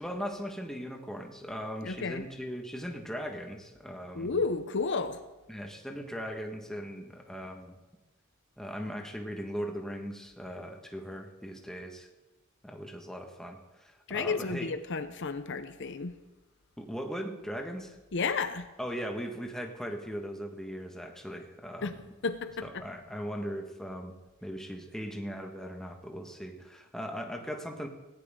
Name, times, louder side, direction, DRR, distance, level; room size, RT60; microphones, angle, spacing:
voice 1, 0.0-4.3 5.5-7.7 8.6-12.1 12.6-14.7 16.8-18.0 18.8-22.0 22.6-24.1 24.4-27.9, equal, 5° left, 2 dB, 1.6 m, -39 dB
voice 2, 1.8-2.2 4.1-5.2 14.1-16.1 18.1-18.7 21.8-21.9 22.2-22.7, left 4 dB, 60° left, 10 dB, 0.8 m, -32 dB
18.0 x 16.5 x 3.8 m, 1.1 s
head